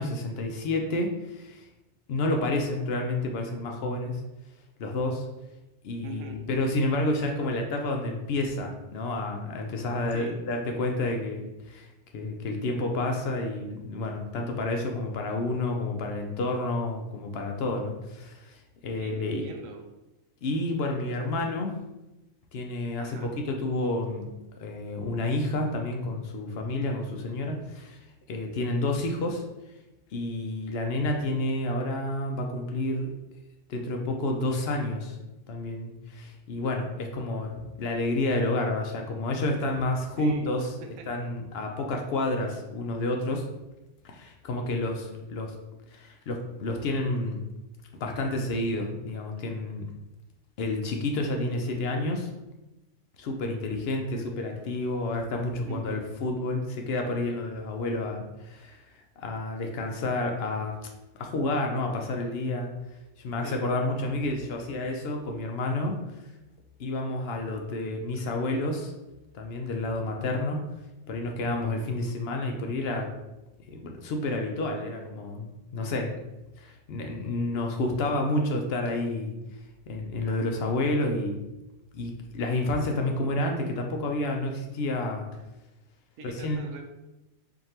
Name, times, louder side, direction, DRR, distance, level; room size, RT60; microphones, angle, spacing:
voice 1, 0.0-1.7 2.1-4.2 4.8-5.2 5.8-11.9 12.1-19.4 20.4-21.7 22.5-24.3 24.6-28.0 28.3-29.4 30.1-33.1 33.7-35.2 35.5-40.7 41.1-43.5 44.0-45.5 45.9-47.4 48.0-49.9 50.6-52.3 53.2-58.8 59.2-60.7 61.2-62.7 63.2-66.0 66.8-68.9 69.3-70.6 71.1-73.1 73.7-76.1 76.6-79.4 79.9-81.4 81.9-85.3 86.2-86.6, left 2 dB, 65° left, 2 dB, 0.7 m, -30 dB
voice 2, 6.0-6.4 10.1-10.4 19.0-19.9 21.1-21.2 23.0-23.3 40.2-40.5 40.8-41.1 55.7-56.0 63.4-63.6 86.2-86.8, right 3 dB, 80° right, 4 dB, 1.0 m, -42 dB
4.7 x 2.6 x 2.8 m, 0.98 s
omnidirectional pair, 1.4 m